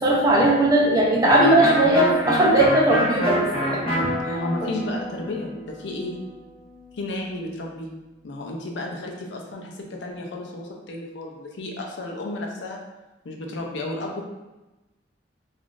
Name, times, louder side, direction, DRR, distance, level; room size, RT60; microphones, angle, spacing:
voice 1, 0.0-4.1, right 1 dB, 20° right, -4 dB, 0.5 m, -19 dB
Electric guitar, 1.3-6.9, equal, 30° left, 0.7 m, -27 dB
voice 2, 4.0-6.2 6.9-7.9 8.2-12.8 13.2-14.2, left 2 dB, 65° left, 0 dB, 0.5 m, -33 dB
3.4 x 2.4 x 2.5 m, 1.1 s
head